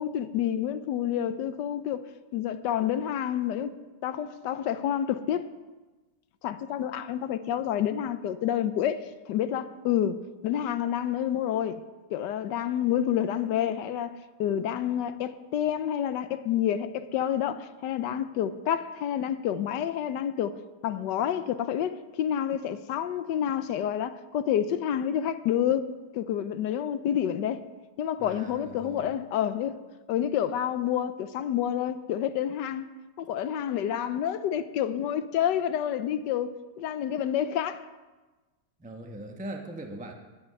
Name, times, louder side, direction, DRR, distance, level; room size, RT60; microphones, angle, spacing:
voice 1, 0.0-2.0 2.3-3.7 4.0-5.5 6.4-11.8 12.1-27.6 28.0-29.8 30.1-32.8 33.2-37.9, left 10 dB, 75° left, 1.2 m, -29 dB
voice 2, 28.2-29.1 38.8-40.1, right 1 dB, 5° right, 0.7 m, -40 dB
11.0 x 9.6 x 6.5 m
omnidirectional pair, 2.0 m